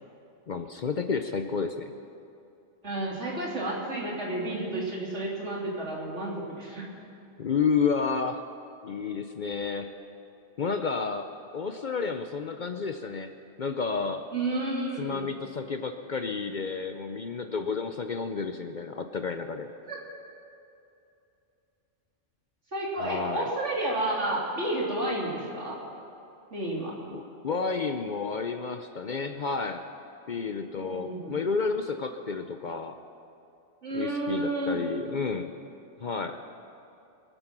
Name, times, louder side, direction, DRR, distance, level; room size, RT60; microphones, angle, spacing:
voice 1, 0.5-1.9 7.4-8.4 8.8-9.9 10.6-13.3 13.6-14.3 15.0-19.7 23.0-23.5 27.1-29.8 30.3-33.0 33.9-35.5 36.0-36.4, left 5 dB, 50° left, 7 dB, 0.7 m, -31 dB
voice 2, 2.8-6.9 14.3-15.2 19.9-20.0 22.7-25.8 26.5-26.9 30.8-31.3 33.8-34.8, right 1 dB, 75° right, -4 dB, 3.4 m, -31 dB
24.0 x 9.0 x 6.0 m, 2.7 s
omnidirectional pair, 1.2 m